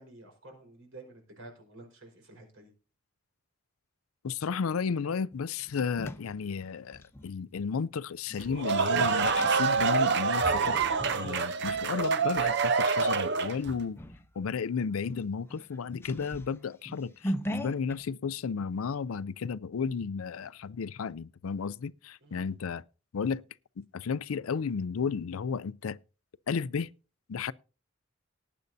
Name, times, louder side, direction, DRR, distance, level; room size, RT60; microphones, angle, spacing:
voice 1, 0.0-2.7 22.2-22.5, right 2 dB, 70° right, 4.8 m, -50 dB
voice 2, 4.2-10.8 11.1-14.0 14.4-22.8 23.1-23.4 23.8-26.0 26.5-26.9 27.3-27.5, left 5 dB, 85° left, 0.5 m, -33 dB
sound 1, 5.3-7.3 8.3-12.5 13.0-13.2 13.6-14.3 14.6-14.7 15.0-18.0, equal, 10° left, 0.7 m, -40 dB
sound 2, 8.4-13.7, right 5 dB, 55° right, 0.7 m, -26 dB
18.5 x 9.4 x 2.7 m
head